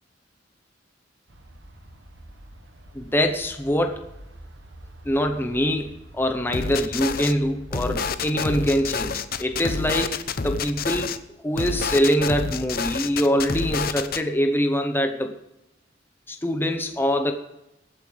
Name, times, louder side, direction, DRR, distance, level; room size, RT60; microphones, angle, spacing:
sound 1, 1.3-10.0, right 1 dB, 75° right, 1.5 m, -46 dB
voice 1, 2.9-4.1 5.0-10.2 10.4-11.1 11.4-15.3 16.3-17.3, equal, 10° left, 5 dB, 0.9 m, -24 dB
sound 2, 6.5-7.3 7.7-11.2 11.6-14.2, left 5 dB, 55° left, 0.7 m, -28 dB
23.0 x 9.1 x 3.4 m, 0.90 s
head